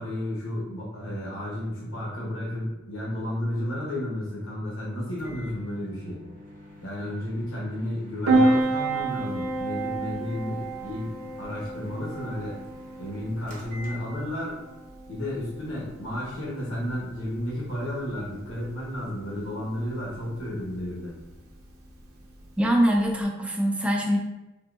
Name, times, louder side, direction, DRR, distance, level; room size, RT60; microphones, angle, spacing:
voice 1, 0.0-6.2 6.8-12.6 13.0-14.6 15.1-21.1, left 1 dB, 70° left, -5 dB, 1.0 m, -32 dB
Microwave oven, 5.2-14.6, left 1 dB, 40° right, 0.7 m, -48 dB
Piano, 8.3-23.2, right 2 dB, 85° right, 0.7 m, -31 dB
voice 2, 22.6-24.2, equal, 5° right, 0 dB, 0.4 m, -23 dB
3.5 x 2.7 x 2.4 m, 1.1 s
head